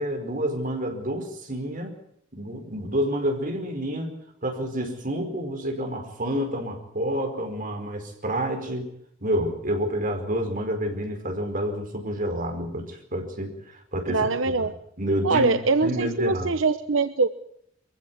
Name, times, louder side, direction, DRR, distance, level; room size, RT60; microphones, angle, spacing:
voice 1, 0.0-2.0 2.3-4.1 4.4-8.9 9.2-14.6 15.0-16.5, equal, 45° right, 4 dB, 4.8 m, -29 dB
voice 2, 14.1-14.7 15.2-17.3, right 3 dB, 80° right, 11 dB, 1.0 m, -23 dB
23.5 x 16.0 x 8.3 m, 0.75 s
head